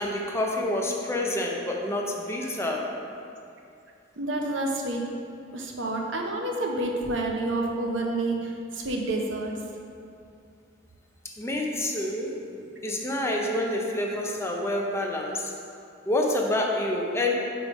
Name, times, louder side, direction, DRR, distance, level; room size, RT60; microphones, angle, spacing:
voice 1, 0.0-2.9 11.4-12.3 12.8-15.5 16.0-17.3, left 1 dB, 15° left, 0 dB, 0.6 m, -27 dB
voice 2, 4.2-5.0 5.5-9.5, right 2 dB, 80° right, 1 dB, 0.8 m, -29 dB
4.9 x 4.9 x 5.1 m, 2.5 s
head